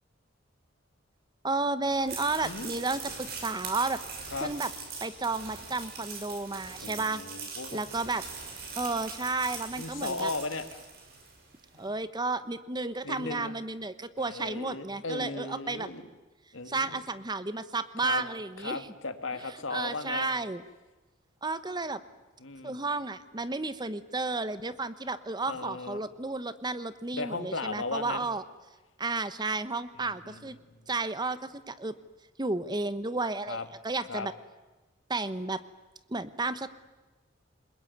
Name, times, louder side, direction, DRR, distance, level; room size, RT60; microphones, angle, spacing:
voice 1, 1.4-4.0 4.4-4.7 5.0-7.2 7.7-8.2 8.8-10.3 11.8-15.9 16.7-18.9 19.7-20.6 21.4-22.0 22.6-28.4 29.0-30.6 30.9-32.0 32.4-34.3 35.1-35.6 36.1-36.7, right 3 dB, 20° right, 13 dB, 1.1 m, -32 dB
sound 1, 1.9-11.4, right 5 dB, 55° right, 6.2 m, -41 dB
voice 2, 6.8-7.8 9.8-10.8 11.8-11.9 13.0-13.5 14.2-16.1 16.5-17.0 18.0-18.2 18.6-20.3 22.4-22.8 25.5-26.0 27.1-28.3 29.9-30.8 33.5-33.6 34.1-34.3, left 3 dB, 85° left, 9 dB, 2.1 m, -36 dB
28.0 x 21.5 x 9.5 m, 1.2 s
head